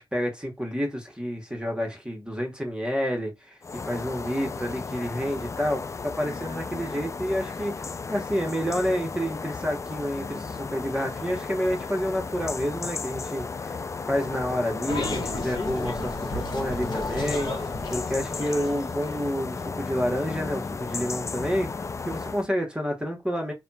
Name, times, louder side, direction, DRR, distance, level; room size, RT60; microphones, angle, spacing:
voice 1, 0.0-7.8 8.1-23.5, equal, 10° right, 1.4 m, -29 dB
sound 1, 3.6-22.5, left 4 dB, 35° left, 0.3 m, -34 dB
sound 2, 14.9-19.3, left 2 dB, 50° left, 1.2 m, -33 dB
3.4 x 2.3 x 4.2 m
wide cardioid pair, 85°, 9 cm